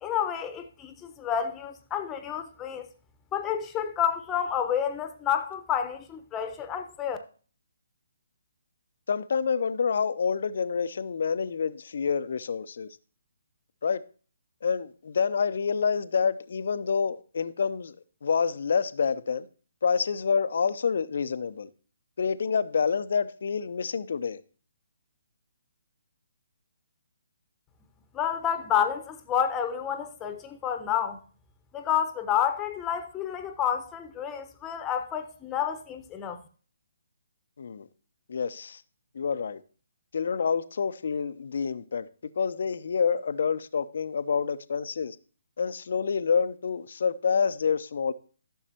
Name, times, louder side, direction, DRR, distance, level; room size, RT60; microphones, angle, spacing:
voice 1, 0.0-2.9 3.3-7.2 28.1-31.2 31.7-36.4, left 9 dB, 15° left, 1.1 m, -29 dB
voice 2, 9.1-12.9 13.8-14.0 14.6-18.0 18.2-19.5 19.8-21.7 22.2-24.4 37.6-37.9 38.3-38.8 39.1-39.6 40.1-42.1 42.4-45.2 45.6-48.1, left 6 dB, 60° left, 0.7 m, -27 dB
14.0 x 6.4 x 2.9 m
figure-of-eight pair, 140°, 0 cm